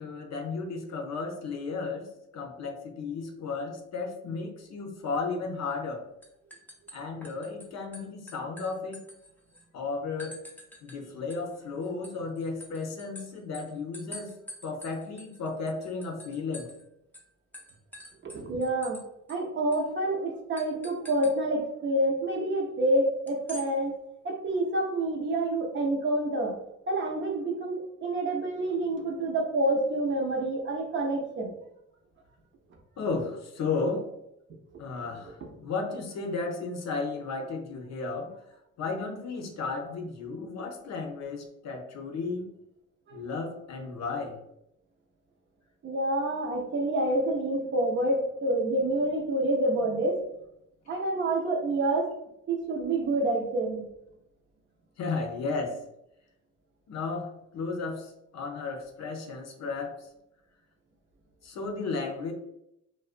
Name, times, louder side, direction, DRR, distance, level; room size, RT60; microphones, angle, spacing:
voice 1, 0.0-2.1 2.3-6.0 6.9-9.0 9.7-10.3 10.8-14.3 14.6-16.7 33.0-34.1 34.8-38.3 38.8-42.5 43.1-44.4 55.0-55.8 56.9-60.0 61.4-62.3, left 4 dB, 60° left, 3 dB, 0.6 m, -34 dB
sound 1, 5.6-5.9 6.2-7.6 7.9-9.6 10.2-11.0 11.3-16.8 17.1-17.3 17.5-19.0 19.3-19.4 19.7-19.9 20.6-21.3 23.3-23.7, left 1 dB, 5° left, 0.5 m, -47 dB
voice 2, 18.2-19.0 19.3-23.9 24.2-26.6 26.9-31.6 43.1-43.2 45.8-50.2 50.9-52.1 52.5-53.8, right 1 dB, 40° right, 0 dB, 0.6 m, -28 dB
2.4 x 2.1 x 2.4 m, 0.80 s
cardioid pair, 90°, 30 cm